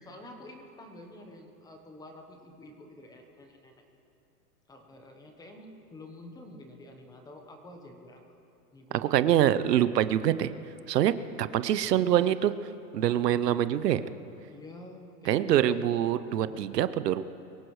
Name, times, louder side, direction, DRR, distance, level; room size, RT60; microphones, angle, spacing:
voice 1, 0.0-3.8 4.7-8.2 8.7-9.3 9.6-9.7 14.5-15.8 16.3-16.8, left 1 dB, 10° left, 3 dB, 1.0 m, -49 dB
voice 2, 8.9-10.5 10.9-11.1 11.4-12.5 12.9-14.0 15.3-17.2, right 11 dB, 85° right, 14 dB, 0.8 m, -25 dB
23.5 x 16.5 x 3.2 m, 2.7 s
hypercardioid pair, 155°, 47 cm